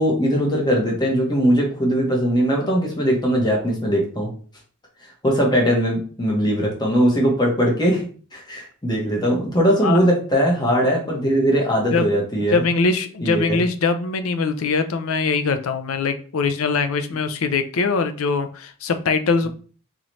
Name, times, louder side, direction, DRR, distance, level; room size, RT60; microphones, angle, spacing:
voice 1, 0.0-4.3 5.2-8.1 8.3-12.6 13.2-13.6, equal, 20° left, -2 dB, 1.1 m, -20 dB
voice 2, 12.5-19.5, left 4 dB, 75° left, 9 dB, 0.5 m, -22 dB
3.9 x 3.0 x 3.1 m, 0.42 s
head